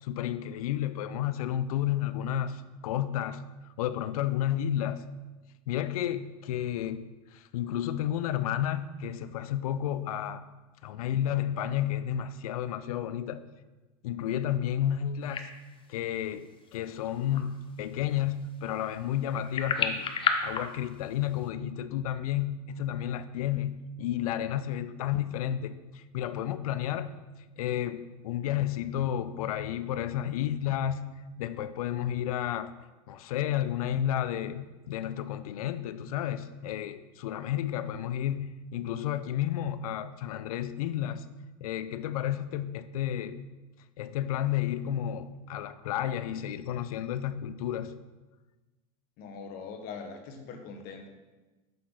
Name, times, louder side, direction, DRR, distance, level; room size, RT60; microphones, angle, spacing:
voice 1, 0.0-3.4 3.8-5.0 5.7-7.0 7.3-10.4 10.8-13.4 14.0-15.5 15.9-20.1 20.4-27.2 27.6-31.0 31.4-32.7 33.1-41.2 41.6-43.5 44.0-47.9, left 11 dB, 80° left, 13 dB, 0.5 m, -31 dB
sound 1, 15.2-21.5, left 5 dB, 30° left, 0.7 m, -34 dB
voice 2, 49.2-51.1, left 5 dB, 55° left, 5 dB, 1.2 m, -42 dB
6.6 x 5.7 x 3.9 m, 1.2 s
hypercardioid pair, 100°, 18 cm